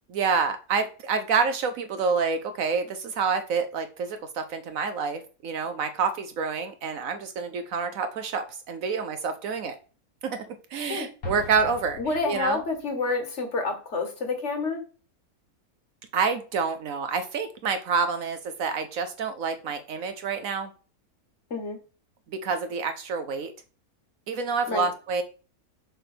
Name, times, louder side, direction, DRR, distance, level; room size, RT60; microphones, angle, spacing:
voice 1, 0.1-9.8 10.2-12.0 12.2-12.6 16.1-20.7 22.3-23.5 24.3-25.2, right 5 dB, 70° right, 9 dB, 1.1 m, -28 dB
Explosion, 11.2-12.9, left 2 dB, 70° left, 2.0 m, -40 dB
voice 2, 12.0-14.8 21.5-21.8 24.7-24.9, left 3 dB, 50° left, 5 dB, 1.8 m, -28 dB
6.7 x 3.3 x 6.0 m, 0.37 s
omnidirectional pair, 1.6 m